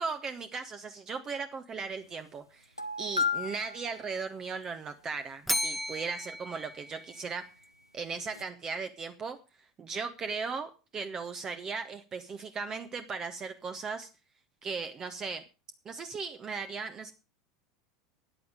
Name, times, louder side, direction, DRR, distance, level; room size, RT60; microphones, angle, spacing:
voice 1, 0.0-7.4 7.9-9.4 9.8-14.1 14.6-15.4 15.8-17.1, right 5 dB, 25° right, 9 dB, 0.9 m, -37 dB
sound 1, 2.0-2.1 2.4-2.5 2.8-4.7 7.6-7.7 8.2-8.4, left 5 dB, 90° left, 0.9 m, -34 dB
Bell, 5.5-7.7, left 1 dB, ahead, 0.6 m, -35 dB
14.0 x 9.5 x 5.0 m, 0.33 s
figure-of-eight pair, 80°, 2 cm